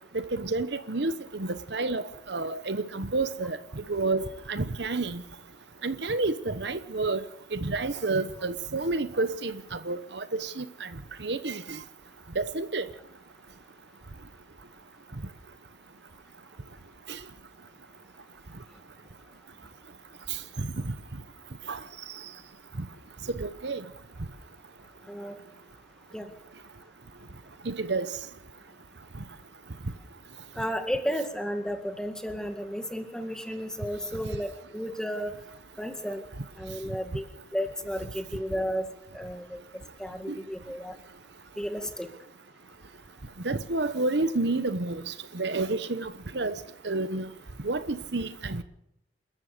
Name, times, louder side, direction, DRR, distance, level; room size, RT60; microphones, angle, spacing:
voice 1, 0.1-3.6 3.9-5.2 5.8-7.2 7.5-10.9 11.2-11.8 12.3-12.9 17.1-17.2 20.6-20.9 21.7-21.8 23.4-23.8 27.6-28.2 40.3-40.4 43.4-46.5 46.8-47.3 47.6-48.6, right 3 dB, 70° right, 1.1 m, -30 dB
voice 2, 25.1-25.4 26.1-26.3 30.6-35.3 35.8-36.2 36.6-38.9 39.1-39.6 40.0-40.9 41.6-42.1, equal, 5° left, 2.0 m, -33 dB
29.0 x 13.5 x 6.8 m
head